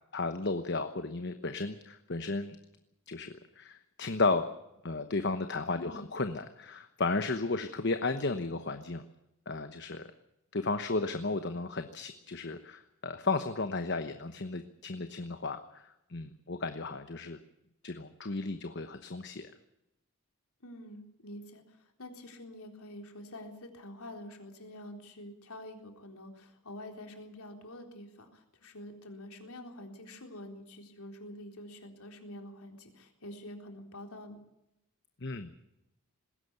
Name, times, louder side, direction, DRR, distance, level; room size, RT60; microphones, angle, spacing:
voice 1, 0.1-2.6 3.1-4.5 4.8-9.0 9.5-10.1 10.5-17.4 17.8-19.5 35.2-35.5, left 3 dB, 50° left, 9 dB, 1.1 m, -34 dB
voice 2, 5.7-6.2 20.6-34.4, left 1 dB, 75° left, 4 dB, 3.8 m, -47 dB
20.0 x 16.5 x 8.2 m, 0.87 s
head